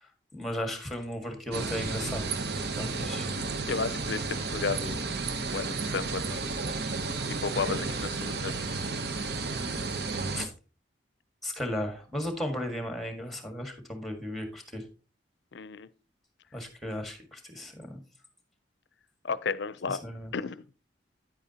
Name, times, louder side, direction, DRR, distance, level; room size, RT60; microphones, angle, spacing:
voice 1, 0.3-2.2 2.6-3.2 10.3-10.5 11.4-14.8 16.5-18.0 19.9-20.3, left 1 dB, ahead, 1.7 m, -35 dB
sound 1, 1.5-10.5, right 3 dB, 60° right, 0.9 m, -32 dB
voice 2, 3.7-5.1 5.5-6.4 7.4-8.5 15.5-15.9 19.2-20.0 20.3-20.6, left 5 dB, 65° left, 0.5 m, -33 dB
9.6 x 8.7 x 2.8 m
head